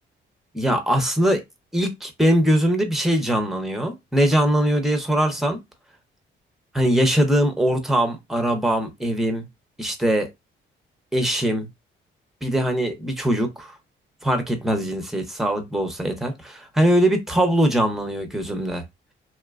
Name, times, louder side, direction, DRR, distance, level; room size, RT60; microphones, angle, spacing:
voice 1, 0.5-1.4 1.7-5.6 6.7-9.5 9.8-10.3 11.1-11.7 12.4-13.7 14.2-18.8, right 1 dB, ahead, 0.7 m, -21 dB
2.6 x 2.2 x 2.4 m
cardioid pair, 90°, 20 cm